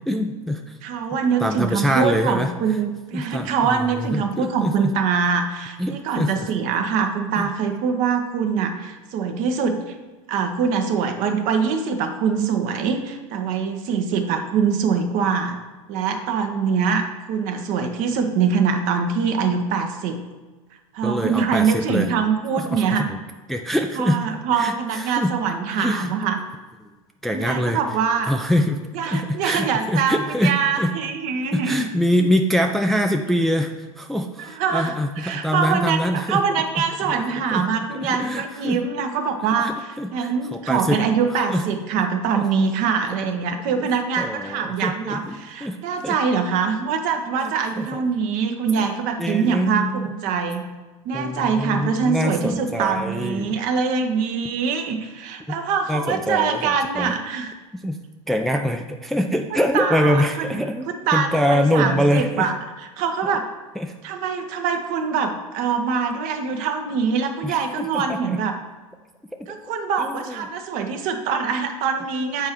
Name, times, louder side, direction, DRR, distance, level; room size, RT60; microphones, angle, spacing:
voice 1, 0.1-0.8 1.4-2.5 3.1-4.9 5.8-6.5 7.4-7.5 21.0-22.1 22.5-23.2 23.5-24.2 24.6-25.3 25.7-26.1 27.2-27.8 28.3-30.9 31.5-36.4 37.0-37.2 37.5-37.7 38.0-38.8 39.6-41.0 41.5-41.6 42.3-42.4 43.7-43.9 44.2-45.8 46.0-46.2 47.4-48.0 48.8-48.9 49.2-50.1 51.1-53.6 55.9-57.1 57.8-58.0 58.3-62.5 63.8-63.9 67.4-68.4 70.0-70.5, equal, ahead, 4 dB, 0.4 m, -24 dB
voice 2, 0.8-9.9 10.3-15.6 15.9-20.2 20.9-23.1 24.0-26.4 27.3-28.3 28.9-31.8 34.4-50.7 51.0-57.5 59.5-60.5 60.9-62.5 63.0-63.5 64.0-68.6 69.5-72.5, right 6 dB, 50° right, 6 dB, 0.9 m, -24 dB
7.7 x 4.3 x 3.6 m, 1.2 s
hypercardioid pair, 95°, 17 cm